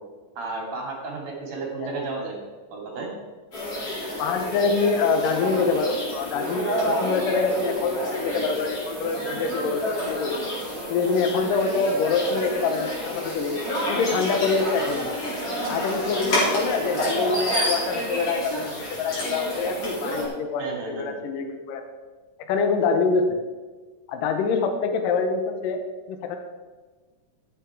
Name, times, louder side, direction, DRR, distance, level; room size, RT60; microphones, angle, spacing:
voice 1, 0.4-2.4 2.7-3.1 20.6-21.1, right 3 dB, 55° right, -1 dB, 3.5 m, -32 dB
sound 1, 3.5-20.3, equal, 45° left, 4.9 m, -29 dB
voice 2, 4.2-10.5 10.9-13.6 13.9-15.1 15.7-21.8 22.5-23.4 24.1-25.8 26.1-26.4, left 4 dB, 80° left, 6 dB, 2.6 m, -25 dB
14.5 x 8.1 x 4.8 m, 1.3 s
omnidirectional pair, 3.9 m